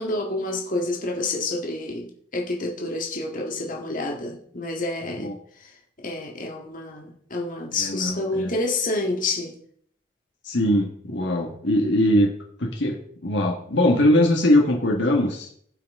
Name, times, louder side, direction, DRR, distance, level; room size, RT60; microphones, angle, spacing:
voice 1, 0.0-5.3 6.0-9.5, left 2 dB, 45° left, 1 dB, 1.8 m, -28 dB
voice 2, 7.8-8.5 10.4-12.3 12.6-15.5, left 1 dB, 65° left, 1 dB, 1.6 m, -21 dB
16.0 x 5.9 x 3.7 m, 0.62 s
head